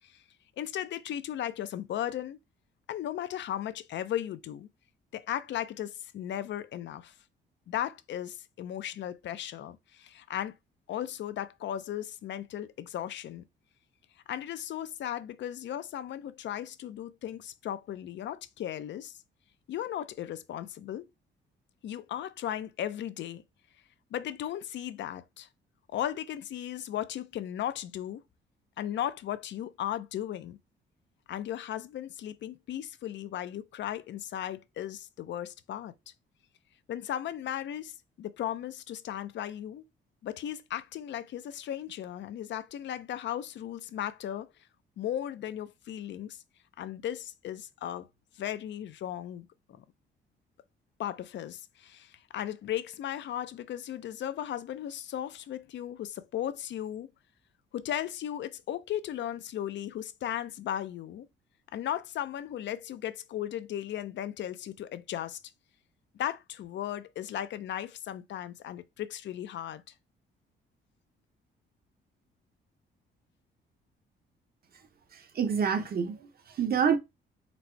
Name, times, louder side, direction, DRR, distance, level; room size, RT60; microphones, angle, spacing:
voice 1, 0.6-2.4 2.9-4.7 5.1-7.1 7.7-10.5 10.9-13.4 14.3-19.1 19.7-21.1 21.8-23.4 24.1-25.5 25.9-28.2 28.8-30.6 31.3-35.9 36.9-39.8 40.2-44.5 45.0-46.4 46.8-48.1 48.4-49.5 49.8-49.9 51.0-57.1 57.7-61.3 61.7-65.4 66.2-69.8, left 11 dB, 65° left, 0.5 m, -36 dB
voice 2, 75.1-77.0, right 7 dB, 50° right, 0.8 m, -28 dB
4.1 x 2.0 x 4.4 m
cardioid pair, 90°, 20 cm